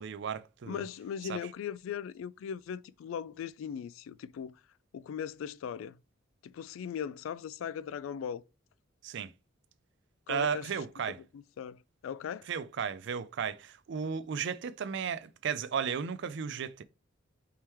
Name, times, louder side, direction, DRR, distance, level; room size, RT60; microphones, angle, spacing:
voice 1, 0.0-0.8 1.3-1.4 9.0-9.3 10.3-11.2 12.5-16.8, right 6 dB, 65° right, 0.4 m, -34 dB
voice 2, 0.7-4.5 4.9-6.0 6.4-8.4 10.3-10.7 11.3-12.5, left 8 dB, 85° left, 0.3 m, -39 dB
4.3 x 3.6 x 3.0 m
head